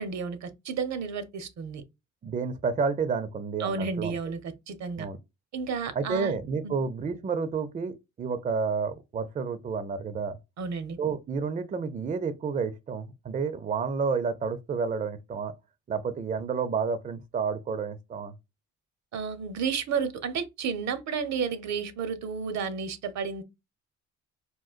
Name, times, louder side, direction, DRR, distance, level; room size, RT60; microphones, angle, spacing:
voice 1, 0.0-1.8 3.6-5.1 5.5-6.4 6.6-6.8 10.6-11.0 19.1-23.4, right 5 dB, 65° right, 0.7 m, -32 dB
voice 2, 2.2-4.2 5.0-5.2 5.9-10.4 11.0-15.5 15.9-18.3, right 5 dB, 25° right, 0.4 m, -30 dB
3.8 x 2.2 x 2.4 m
cardioid pair, 90°, 30 cm